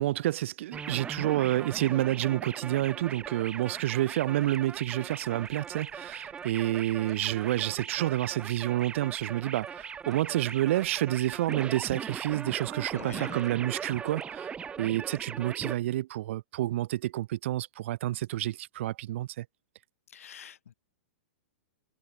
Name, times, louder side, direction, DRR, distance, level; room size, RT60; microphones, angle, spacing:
voice 1, 0.0-19.5, right 14 dB, 65° right, 0.4 m, -29 dB
sound 1, 0.7-15.8, right 7 dB, 15° right, 0.6 m, -40 dB
sound 2, 3.1-14.4, left 1 dB, 5° left, 5.3 m, -73 dB
voice 2, 12.9-13.4 20.1-20.7, left 9 dB, 90° left, 0.8 m, -45 dB
hypercardioid pair, 135°, 7 cm